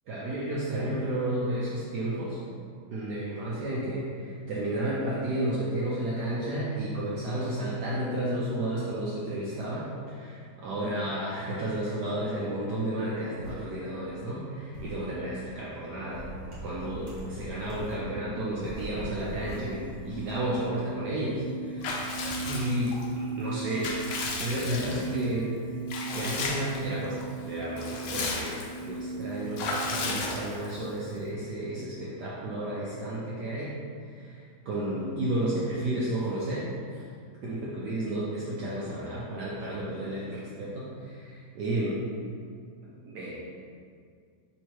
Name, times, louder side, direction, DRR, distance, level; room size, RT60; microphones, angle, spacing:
voice 1, 0.1-2.4 2.9-16.3 16.6-22.1 22.4-23.9 24.4-25.5 26.1-27.2 27.5-33.8 34.1-37.0 37.4-42.0 43.0-43.4, right 1 dB, 75° right, -7 dB, 0.9 m, -32 dB
sound 1, 13.4-13.5 14.7-14.9 16.1-17.9 18.6-20.4, right 1 dB, 45° right, 1.2 m, -41 dB
sound 2, 19.2-30.8, right 4 dB, 25° right, 1.1 m, -39 dB
Water / Bathtub (filling or washing) / Liquid, 21.8-23.1 23.5-25.2 25.9-26.8 27.2-27.3 27.6-28.8 29.6-30.8, left 3 dB, 75° left, 1.0 m, -34 dB
3.5 x 3.0 x 4.4 m, 2.2 s
omnidirectional pair, 2.4 m